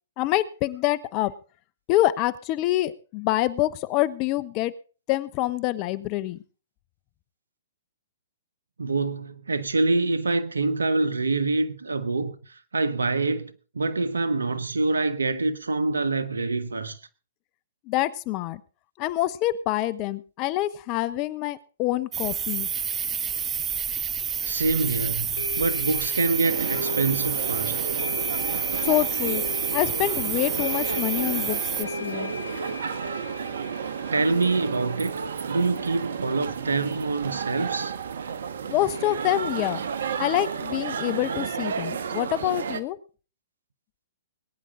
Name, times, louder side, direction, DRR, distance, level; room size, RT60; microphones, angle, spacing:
voice 1, 0.2-1.3 1.9-4.7 5.1-6.4 17.9-18.6 19.0-22.7 28.8-29.4 29.7-32.3 38.7-39.8 40.2-43.0, left 15 dB, 35° left, 1.0 m, -26 dB
voice 2, 8.8-17.0 24.4-27.8 34.1-35.2 35.5-37.9, right 3 dB, 85° right, 1.5 m, -26 dB
sound 1, 22.1-31.8, right 8 dB, 20° right, 0.7 m, -29 dB
sound 2, 24.4-24.5 25.4-36.9, left 4 dB, 75° left, 3.3 m, -38 dB
sound 3, 26.4-42.8, right 6 dB, 70° right, 1.3 m, -32 dB
21.0 x 10.0 x 3.9 m
hypercardioid pair, 125°, 0 cm